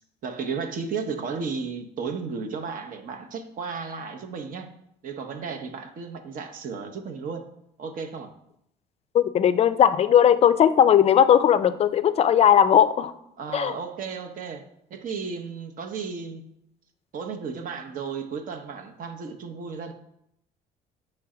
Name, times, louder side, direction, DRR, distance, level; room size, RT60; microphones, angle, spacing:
voice 1, 0.2-4.7 5.0-7.5 7.8-8.3 13.4-14.6 14.9-16.4 17.1-19.9, right 5 dB, 55° right, 6 dB, 0.8 m, -34 dB
voice 2, 9.1-13.1 13.5-13.7, left 9 dB, 40° left, 14 dB, 0.4 m, -18 dB
6.0 x 3.2 x 4.8 m, 0.77 s
cardioid pair, 110°, 17 cm